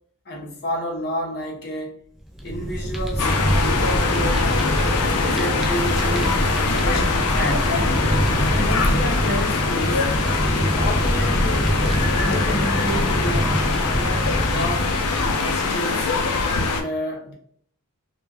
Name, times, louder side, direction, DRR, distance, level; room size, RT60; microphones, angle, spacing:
voice 1, 0.3-1.9 2.4-4.5 5.2-7.8 8.4-10.1 10.5-11.8 12.2-16.1 16.7-17.3, equal, 50° left, 0.7 m, -30 dB
Fire, 2.2-15.8, equal, ahead, 0.4 m, -24 dB
sound 1, 3.2-16.8, left 4 dB, 85° left, 0.4 m, -23 dB
2.2 x 2.2 x 3.2 m
head